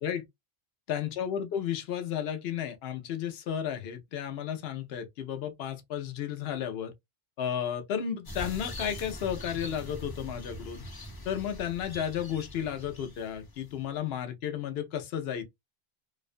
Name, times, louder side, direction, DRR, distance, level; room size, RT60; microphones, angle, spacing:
voice 1, 0.9-6.9 7.4-10.8 11.2-15.4, left 9 dB, 80° left, 0.8 m, -33 dB
sound 1, 8.3-14.0, left 1 dB, 25° left, 0.6 m, -43 dB
2.4 x 2.2 x 2.5 m
omnidirectional pair, 1.0 m